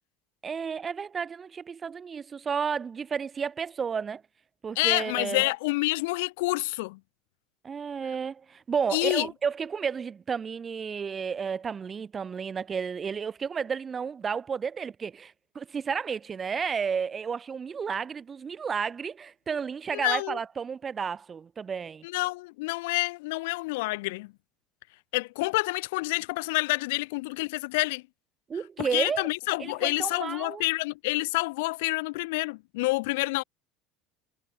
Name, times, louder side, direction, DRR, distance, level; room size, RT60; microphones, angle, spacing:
voice 1, 0.4-4.2 4.6-5.4 7.6-22.0 28.5-29.3 29.6-30.6, right 6 dB, 30° right, 1.3 m, -32 dB
voice 2, 4.7-7.0 8.9-9.3 19.9-20.4 22.0-24.3 25.1-28.0 28.8-33.4, left 23 dB, 80° left, 1.1 m, -28 dB
supercardioid pair, 105°, 0 cm